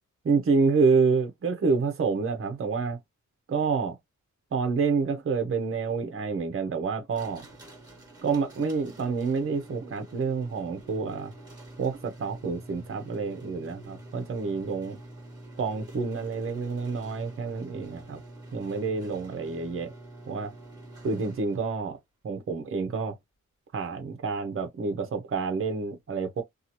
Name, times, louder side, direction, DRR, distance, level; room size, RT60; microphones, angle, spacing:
voice 1, 0.2-3.0 3.5-4.0 4.5-7.4 8.2-11.3 11.8-15.0 15.6-18.2 18.5-19.9 20.3-20.5 21.0-22.0 22.2-23.1 23.7-26.4, right 4 dB, 45° right, 0.6 m, -28 dB
sound 1, 7.1-21.8, right 1 dB, 15° right, 1.2 m, -47 dB
2.7 x 2.4 x 2.8 m
wide cardioid pair, 145°, 30 cm